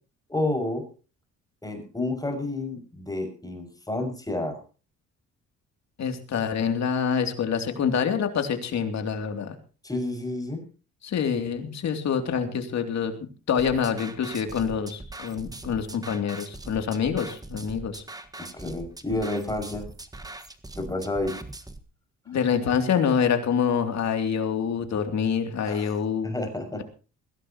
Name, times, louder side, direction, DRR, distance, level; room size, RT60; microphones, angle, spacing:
voice 1, 0.3-0.9 1.6-4.6 9.8-10.6 18.4-19.9 20.8-21.4 25.7-25.9 26.2-26.8, left 2 dB, 10° left, 3 dB, 6.0 m, -30 dB
voice 2, 6.0-9.5 11.0-13.2 13.5-18.0 22.3-26.3, left 7 dB, 65° left, 5 dB, 2.9 m, -26 dB
sound 1, 13.6-21.8, right 2 dB, 10° right, 1.6 m, -41 dB
21.0 x 16.5 x 3.0 m, 0.36 s
cardioid pair, 90°, 30 cm